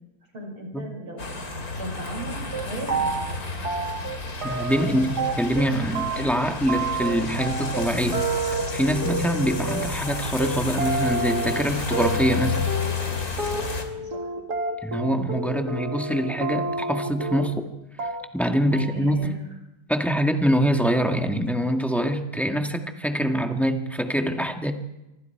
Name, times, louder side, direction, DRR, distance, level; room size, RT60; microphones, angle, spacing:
voice 1, 0.3-1.2 1.8-3.2 13.9-14.3 18.7-19.3, equal, 85° right, 2 dB, 7.1 m, -37 dB
sound 1, 1.2-13.8, left 4 dB, 45° left, 3.1 m, -31 dB
sound 2, 2.2-2.3 2.5-3.4 3.6-5.7 6.0-17.7 18.0-18.5 18.7-19.1, right 3 dB, 50° right, 2.5 m, -30 dB
voice 2, 4.4-8.3 8.7-12.7 14.8-17.7 18.3-19.4 19.9-24.7, equal, ahead, 4 dB, 1.5 m, -24 dB
26.5 x 24.0 x 4.7 m, 0.95 s
omnidirectional pair, 2.3 m